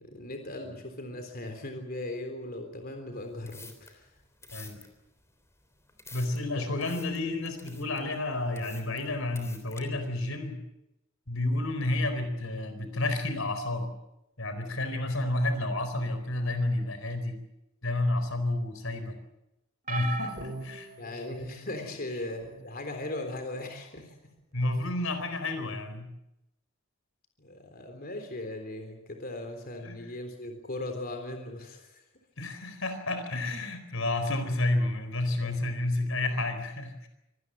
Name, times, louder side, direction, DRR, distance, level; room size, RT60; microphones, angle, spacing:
voice 1, 0.1-4.0 6.5-6.6 21.0-24.0 27.4-31.9 34.3-34.4 35.4-35.5, left 1 dB, 45° left, 5 dB, 3.7 m, -38 dB
sound 1, 3.2-9.8, left 3 dB, 15° left, 3.5 m, -51 dB
voice 2, 6.1-10.6 11.3-13.9 14.4-17.4 17.8-19.2 19.9-21.4 21.8-21.9 24.5-26.1 29.8-30.1 32.4-37.1, left 2 dB, 75° left, 9 dB, 4.3 m, -30 dB
sound 2, 19.9-21.7 22.4-22.7 24.0-24.1, right 2 dB, 40° right, 2.9 m, -38 dB
25.0 x 19.0 x 7.7 m, 0.87 s
head